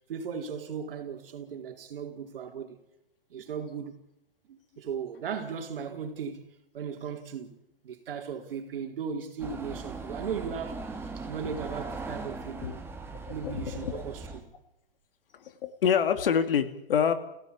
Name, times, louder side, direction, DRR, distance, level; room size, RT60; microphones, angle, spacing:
voice 1, 0.1-2.8 3.3-4.0 4.5-6.4 6.7-7.6 7.8-12.8 13.3-14.5, right 6 dB, 70° right, 4.2 m, -37 dB
sound 1, 9.4-14.4, right 3 dB, 10° right, 2.8 m, -39 dB
voice 2, 13.4-14.0 15.3-17.1, left 7 dB, 70° left, 2.7 m, -26 dB
29.5 x 17.0 x 8.7 m
hypercardioid pair, 140°, 29 cm